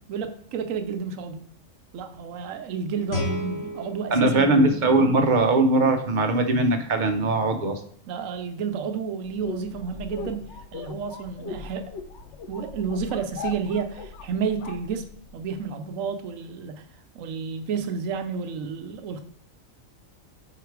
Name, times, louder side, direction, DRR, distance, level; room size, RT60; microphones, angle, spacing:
voice 1, 0.1-1.4 1.9-4.5 8.1-10.4 10.7-11.9 12.5-15.1 15.3-16.8 17.1-19.2, right 6 dB, 80° right, 7 dB, 1.1 m, -31 dB
Guitar, 3.1-5.9, left 2 dB, 85° left, 1.9 m, -34 dB
voice 2, 4.1-7.8, right 2 dB, 40° right, 6 dB, 0.8 m, -20 dB
sound 1, 9.2-15.5, left 5 dB, 65° left, 0.9 m, -39 dB
5.6 x 4.9 x 4.6 m, 0.62 s
omnidirectional pair, 1.4 m